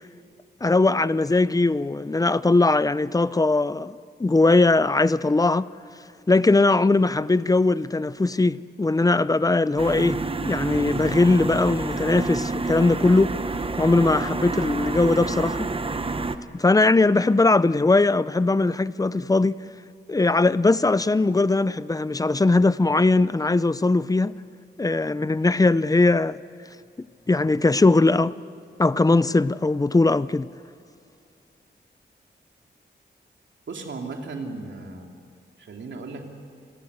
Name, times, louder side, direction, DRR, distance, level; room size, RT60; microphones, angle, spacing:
voice 1, 0.6-5.7 6.3-13.3 13.8-15.7 16.5-19.6 20.1-24.3 24.8-26.4 27.3-28.3 28.8-30.5, left 3 dB, 20° left, 0.5 m, -20 dB
sound 1, 9.8-16.4, right 3 dB, 30° right, 1.0 m, -28 dB
voice 2, 33.7-35.1 35.6-36.2, right 3 dB, 85° right, 2.9 m, -35 dB
28.0 x 20.5 x 8.1 m
wide cardioid pair, 105°, 19 cm